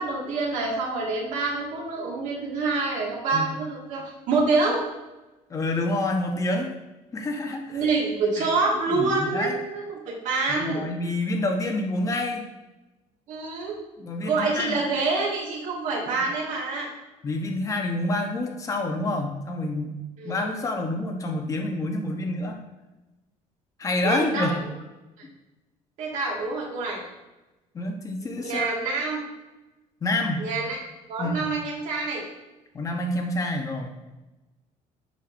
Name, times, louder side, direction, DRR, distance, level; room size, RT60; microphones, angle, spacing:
voice 1, 0.0-4.8 7.7-10.8 13.3-13.8 14.2-16.9 20.2-20.5 24.0-24.5 26.0-27.0 28.4-29.2 30.4-30.8 31.1-32.2, right 3 dB, 70° right, -2 dB, 1.9 m, -26 dB
voice 2, 5.5-6.8 7.1-7.8 8.4-8.5 8.9-9.6 10.5-12.5 14.0-14.8 17.2-20.0 20.2-22.6 23.8-24.6 27.7-28.7 30.0-30.5 31.2-31.5 32.7-33.9, left 2 dB, 25° left, 3 dB, 0.8 m, -28 dB
7.2 x 5.7 x 2.6 m, 1.1 s
cardioid pair, 155°, 13 cm